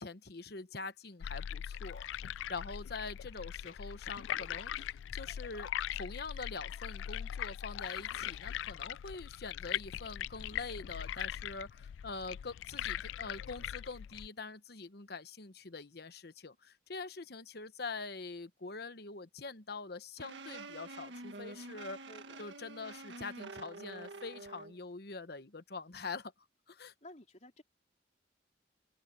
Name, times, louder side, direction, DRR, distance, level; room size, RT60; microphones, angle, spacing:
voice 1, 0.0-2.1 2.5-22.0 22.4-26.3 26.7-26.9, left 4 dB, 55° left, 1.0 m, -44 dB
sound 1, 1.2-14.3, left 10 dB, 80° left, 0.3 m, -41 dB
sound 2, 20.2-24.7, right 2 dB, 75° right, 1.8 m, -47 dB
voice 2, 22.0-22.5 27.0-27.6, left 1 dB, 40° left, 4.1 m, -54 dB
open air
head